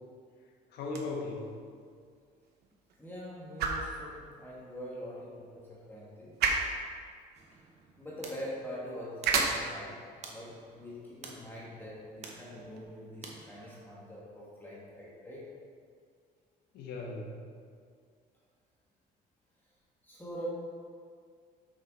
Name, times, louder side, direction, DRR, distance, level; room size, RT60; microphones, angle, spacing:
voice 1, 0.7-1.5 16.7-17.4, left 3 dB, 75° left, 0 dB, 1.3 m, -37 dB
sound 1, 0.8-12.8, right 4 dB, 70° right, 0.9 m, -37 dB
voice 2, 3.0-6.3 8.0-10.0 10.3-15.5 20.0-20.5, equal, 10° left, -6 dB, 1.5 m, -44 dB
sound 2, 7.3-13.4, right 3 dB, 40° right, 1.0 m, -52 dB
6.0 x 5.4 x 4.0 m, 2.1 s
cardioid pair, 110°, 17 cm